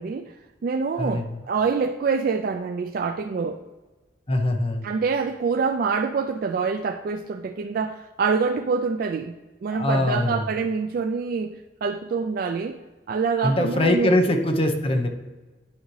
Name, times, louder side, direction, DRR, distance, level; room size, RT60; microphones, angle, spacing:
voice 1, 0.0-3.6 4.8-9.4 9.6-12.8 13.1-14.1, right 5 dB, 55° right, 0.3 m, -26 dB
voice 2, 4.3-4.8 9.7-10.4 13.4-15.1, left 1 dB, 30° left, 0.8 m, -22 dB
10.5 x 4.9 x 3.2 m
head